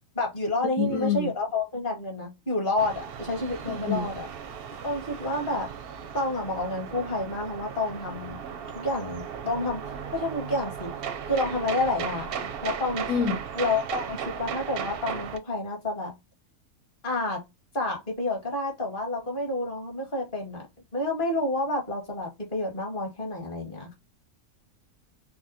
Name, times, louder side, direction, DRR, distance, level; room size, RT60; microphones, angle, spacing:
voice 1, 0.2-4.3 4.8-5.7 6.1-8.4 8.7-10.9 11.3-13.1 13.5-16.1 17.0-17.4 17.7-20.7 20.9-23.9, left 2 dB, 35° left, 1.8 m, -29 dB
voice 2, 0.8-1.3 3.9-4.1 13.1-13.4, left 7 dB, 75° left, 1.2 m, -26 dB
sound 1, 2.8-15.4, right 7 dB, 55° right, 0.6 m, -36 dB
5.7 x 2.2 x 2.7 m
omnidirectional pair, 1.5 m